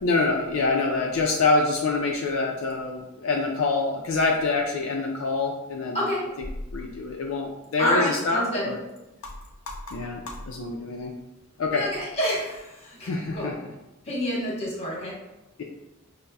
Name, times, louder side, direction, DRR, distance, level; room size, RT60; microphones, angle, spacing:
voice 1, 0.0-6.0 6.7-8.8 9.7-11.1 11.6-11.8 13.0-13.5, left 3 dB, 70° left, 0 dB, 0.4 m, -26 dB
voice 2, 5.9-6.3 7.8-8.7 11.7-13.5 14.0-15.2, equal, 30° left, -5 dB, 1.1 m, -28 dB
5.2 x 2.0 x 2.2 m, 0.96 s
head